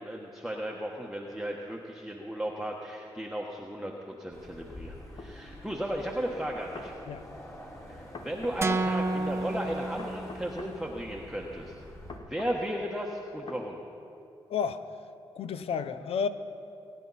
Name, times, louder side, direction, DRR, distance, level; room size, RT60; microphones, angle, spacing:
voice 1, 0.0-6.9 8.2-11.7 12.2-13.8, equal, 5° right, -2 dB, 1.3 m, -35 dB
sound 1, 4.3-12.2, left 1 dB, 30° left, 3.9 m, -47 dB
sound 2, 5.2-5.3 6.5-6.9 8.1-8.9 10.0-10.7 12.1-12.6 13.5-13.6, left 3 dB, 50° left, 1.2 m, -43 dB
sound 3, 8.6-10.7, right 2 dB, 25° right, 0.6 m, -30 dB
voice 2, 14.5-14.8 15.3-16.3, left 6 dB, 75° left, 12 dB, 0.7 m, -31 dB
22.0 x 9.2 x 4.2 m, 2.6 s
cardioid pair, 60°, 10 cm